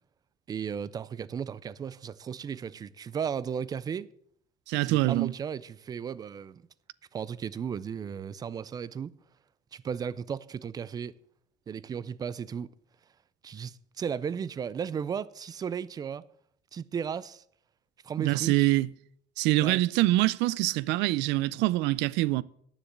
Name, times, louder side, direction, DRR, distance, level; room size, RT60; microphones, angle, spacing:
voice 1, 0.5-4.1 4.8-6.6 7.1-9.2 9.7-11.1 11.7-12.7 13.4-16.3 16.7-17.4 18.0-18.7 19.6-19.8, right 7 dB, 20° right, 0.3 m, -35 dB
voice 2, 4.7-5.3 18.2-18.9 19.4-22.4, right 18 dB, 90° right, 0.4 m, -25 dB
9.4 x 7.0 x 7.8 m
cardioid pair, 170°, 18 cm